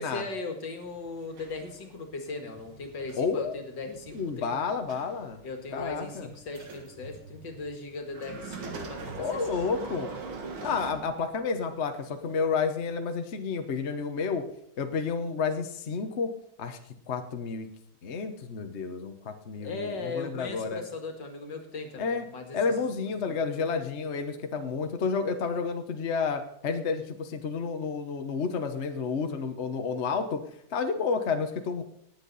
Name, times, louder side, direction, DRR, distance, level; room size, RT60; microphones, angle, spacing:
voice 1, 0.0-4.7 5.4-9.6 19.6-22.8 23.3-23.4, left 3 dB, 60° left, 5 dB, 2.4 m, -38 dB
sound 1, 0.8-11.6 12.3-12.4, right 4 dB, 85° right, 2.4 m, -43 dB
voice 2, 3.2-3.5 4.1-5.4 5.7-6.3 9.2-10.1 10.6-14.4 14.8-16.3 16.6-16.8 17.1-17.7 18.0-20.8 22.0-22.2 22.5-30.4 30.7-31.8, left 5 dB, 45° left, 6 dB, 1.0 m, -30 dB
18.5 x 8.4 x 4.0 m, 0.73 s
omnidirectional pair, 2.2 m